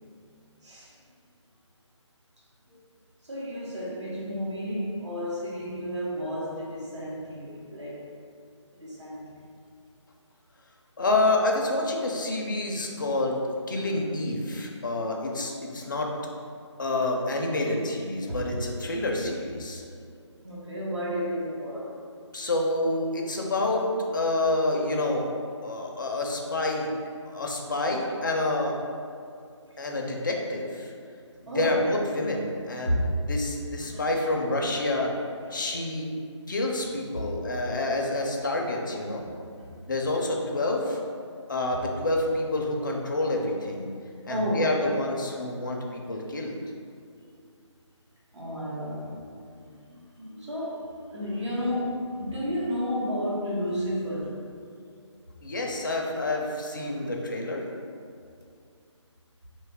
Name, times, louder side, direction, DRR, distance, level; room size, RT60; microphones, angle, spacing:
voice 1, 0.6-0.9 2.7-2.8 3.2-8.1 8.7-9.4 18.3-18.7 20.4-22.0 29.7-29.8 31.5-31.9 32.8-33.2 33.8-34.1 34.6-34.7 35.0-35.1 35.4-35.7 37.2-37.3 39.6-39.8 44.3-44.7 48.3-54.4 56.8-57.1, equal, 65° right, -7 dB, 1.0 m, -32 dB
voice 2, 11.0-13.4 13.7-16.1 16.8-19.8 22.3-23.8 24.1-25.3 25.6-26.9 27.3-28.7 29.8-30.9 31.6-33.0 33.3-35.1 35.5-36.1 36.5-39.2 39.9-41.0 41.5-43.9 44.2-46.6 55.4-57.7, left 2 dB, 40° left, 0 dB, 0.4 m, -28 dB
3.1 x 2.3 x 3.4 m, 2.3 s
figure-of-eight pair, 170°, 16 cm